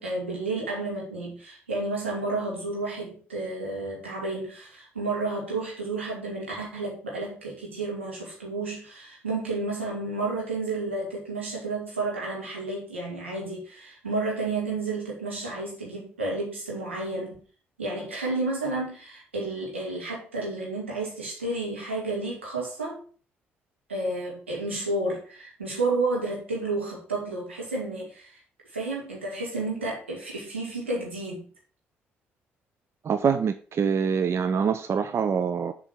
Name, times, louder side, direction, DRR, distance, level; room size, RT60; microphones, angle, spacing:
voice 1, 0.0-17.4 17.8-23.0 23.9-28.4 28.7-31.4, right 2 dB, 90° right, -3 dB, 2.2 m, -31 dB
voice 2, 33.0-35.7, right 6 dB, 45° right, 9 dB, 0.6 m, -25 dB
7.2 x 3.9 x 6.2 m, 0.40 s
figure-of-eight pair, 45°, 6 cm